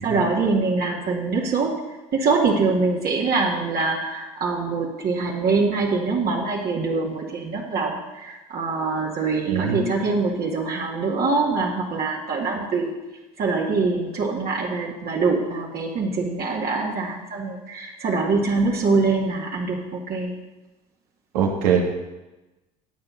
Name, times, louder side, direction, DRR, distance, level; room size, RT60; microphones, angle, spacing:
voice 1, 0.0-1.7 2.1-12.9 13.4-20.3, right 4 dB, 50° right, -3 dB, 2.1 m, -24 dB
voice 2, 9.5-9.8 21.3-21.9, right 6 dB, 90° right, 1 dB, 2.1 m, -21 dB
10.5 x 8.1 x 5.7 m, 1.1 s
supercardioid pair, 80°, 20 cm